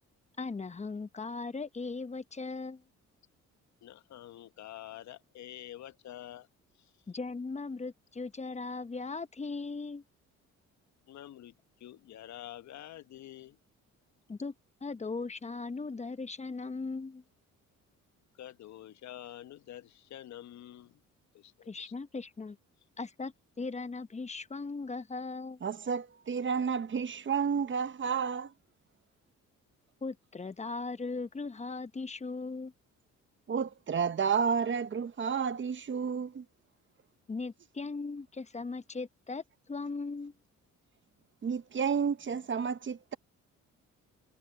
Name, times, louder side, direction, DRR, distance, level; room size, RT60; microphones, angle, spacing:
voice 1, 0.4-2.8 7.1-10.0 14.3-14.5 14.8-17.2 21.7-22.6 23.0-25.6 30.0-32.7 37.3-40.3, left 3 dB, 20° left, 1.0 m, -38 dB
voice 2, 3.8-6.5 6.8-6.9 11.1-11.5 11.8-13.6 18.3-21.0 21.3-21.9, left 12 dB, 65° left, 1.0 m, -47 dB
voice 3, 25.6-28.5 33.5-36.4 41.4-43.1, right 6 dB, 40° right, 1.0 m, -31 dB
cardioid pair, 90°, 30 cm